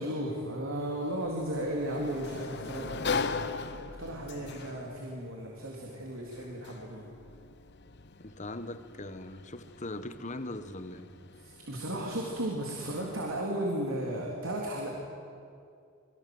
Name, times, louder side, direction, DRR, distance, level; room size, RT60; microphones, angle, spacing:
voice 1, 0.0-3.3 4.0-7.1 11.4-14.9, right 1 dB, 75° right, -1 dB, 3.7 m, -35 dB
Sliding door, 0.7-13.4, left 4 dB, 55° left, 1.1 m, -41 dB
voice 2, 8.2-11.1, left 2 dB, 35° left, 10 dB, 1.3 m, -40 dB
28.0 x 23.0 x 8.0 m, 2.4 s
head